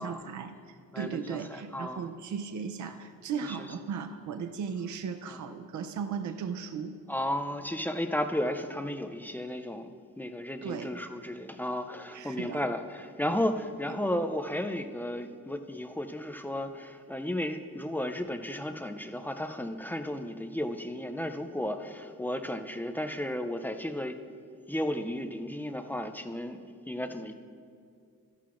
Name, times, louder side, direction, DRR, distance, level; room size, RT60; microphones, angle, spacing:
voice 1, 0.0-7.0 10.6-10.9 12.1-12.6, right 6 dB, 60° right, 7 dB, 0.5 m, -36 dB
voice 2, 0.9-2.1 3.5-3.7 5.3-5.4 7.1-9.9 10.2-24.2 24.7-26.6 26.9-27.3, left 1 dB, 5° left, 7 dB, 0.4 m, -34 dB
14.0 x 11.5 x 2.5 m, 2.3 s
wide cardioid pair, 145°, 33 cm